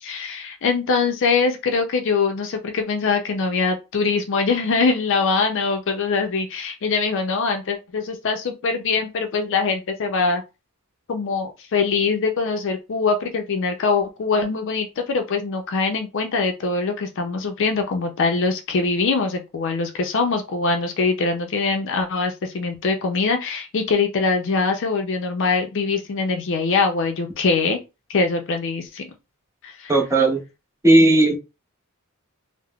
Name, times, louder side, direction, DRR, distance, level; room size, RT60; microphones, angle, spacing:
voice 1, 0.0-10.4 11.1-27.8 28.1-29.1 29.6-29.9, left 4 dB, 60° left, 5 dB, 0.5 m, -23 dB
voice 2, 29.9-30.4 30.8-31.4, right 2 dB, 15° right, -2 dB, 0.7 m, -15 dB
3.4 x 2.0 x 2.3 m, 0.26 s
head